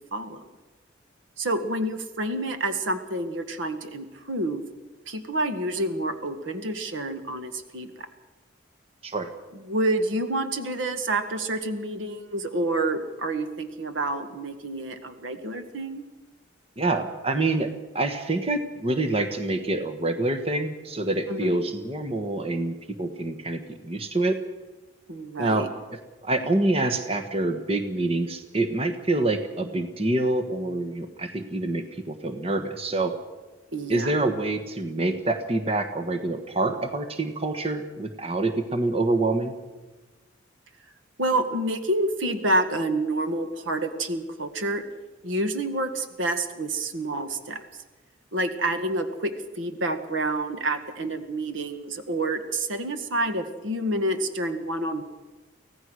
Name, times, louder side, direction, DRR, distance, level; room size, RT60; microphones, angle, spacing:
voice 1, 0.1-0.5 1.4-4.6 5.1-8.1 9.5-16.0 21.3-21.6 25.1-25.7 33.7-34.1 41.2-44.8 45.2-47.6 48.3-55.0, right 1 dB, 80° right, 8 dB, 1.8 m, -28 dB
voice 2, 16.8-24.4 25.4-33.1 33.9-39.5, right 2 dB, 30° right, 7 dB, 1.4 m, -26 dB
24.5 x 16.5 x 6.4 m, 1.2 s
head